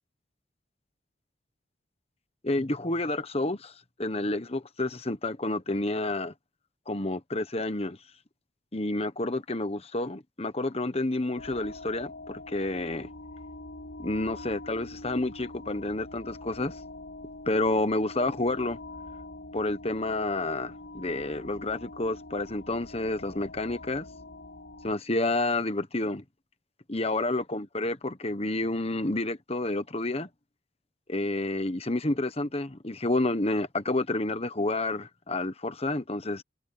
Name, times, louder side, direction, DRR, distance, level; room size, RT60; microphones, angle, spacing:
voice 1, 2.4-3.7 4.0-6.3 6.9-8.0 8.7-13.1 14.0-16.8 17.5-18.8 19.5-24.1 24.8-26.2 26.9-30.3 31.1-36.4, left 2 dB, 30° left, 1.3 m, -29 dB
sound 1, 11.4-24.9, left 2 dB, 60° left, 6.0 m, -44 dB
head